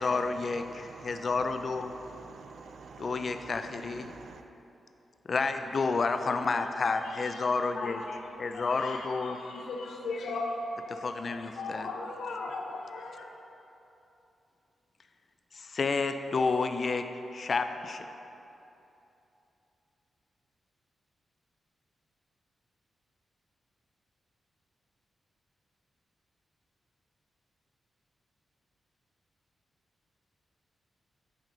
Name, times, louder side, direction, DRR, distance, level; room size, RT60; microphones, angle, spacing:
voice 1, 0.0-1.9 3.0-4.1 5.3-8.0 8.4-9.4 11.0-11.9 15.5-18.1, left 4 dB, 45° left, 8 dB, 0.4 m, -30 dB
voice 2, 0.7-1.2 1.9-3.3 4.1-4.4, right 5 dB, 70° right, 7 dB, 0.4 m, -48 dB
voice 3, 7.0-13.3, left 3 dB, 85° left, 1 dB, 0.8 m, -38 dB
9.1 x 5.1 x 3.9 m, 2.9 s
wide cardioid pair, 110°, 0 cm